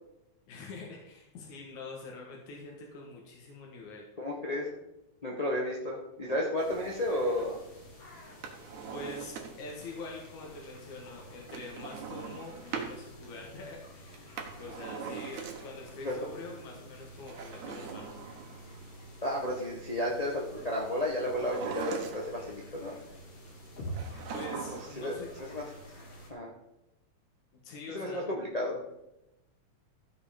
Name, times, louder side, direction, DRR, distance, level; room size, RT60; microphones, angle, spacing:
voice 1, 0.5-4.1 8.9-18.2 24.3-25.3 27.6-28.2, left 3 dB, 80° left, -1 dB, 3.0 m, -45 dB
voice 2, 4.2-4.7 5.2-7.6 16.0-16.1 19.2-22.9 25.0-25.1 25.5-25.6 26.3-26.5 27.9-28.9, left 1 dB, 30° left, -3 dB, 0.7 m, -32 dB
sound 1, 6.6-26.3, right 1 dB, 55° left, 3.5 m, -48 dB
Drawer open or close, 8.3-9.8 11.5-13.0 14.1-15.9 17.2-18.8 21.3-22.5 23.9-25.1 25.3-25.4, right 6 dB, 80° right, 2.7 m, -40 dB
14.5 x 5.5 x 5.1 m, 0.91 s
omnidirectional pair, 3.4 m